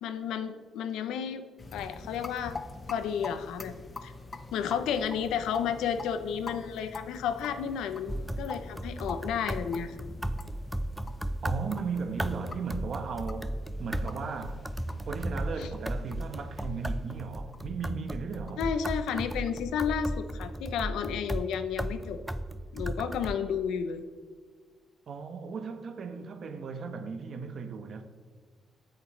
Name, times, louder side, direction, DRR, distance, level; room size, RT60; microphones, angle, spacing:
voice 1, 0.0-1.5 1.7-2.6 2.9-3.7 4.0-4.1 4.5-10.0 15.6-15.7 18.6-22.2 22.7-24.0, left 7 dB, 85° left, 0.7 m, -32 dB
sound 1, 1.6-20.8, left 3 dB, 30° left, 0.7 m, -46 dB
sound 2, 8.1-23.4, right 1 dB, 5° right, 0.4 m, -35 dB
voice 2, 11.4-14.6 15.1-18.6 25.1-28.0, right 5 dB, 55° right, 1.2 m, -36 dB
19.0 x 6.7 x 3.3 m
cardioid pair, 90°, 0 cm